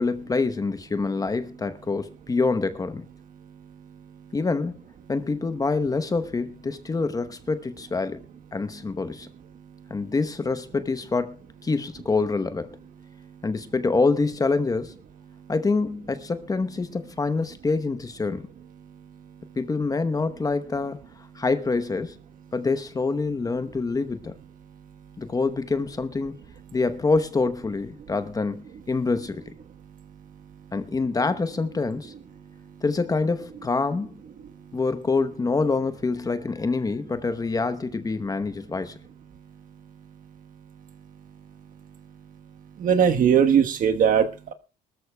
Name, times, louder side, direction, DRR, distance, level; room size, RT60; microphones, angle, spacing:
voice 1, 0.0-3.0 4.3-4.8 5.1-8.2 8.5-9.3 9.9-12.8 13.4-14.9 15.5-18.5 19.6-21.0 21.4-22.2 22.5-24.3 25.2-26.3 26.7-29.4 30.7-32.1 32.8-34.1 34.7-38.9, left 3 dB, 20° left, 0.9 m, -26 dB
voice 2, 42.8-44.5, right 8 dB, 55° right, 1.3 m, -19 dB
24.0 x 13.5 x 2.3 m
cardioid pair, 110°, 17 cm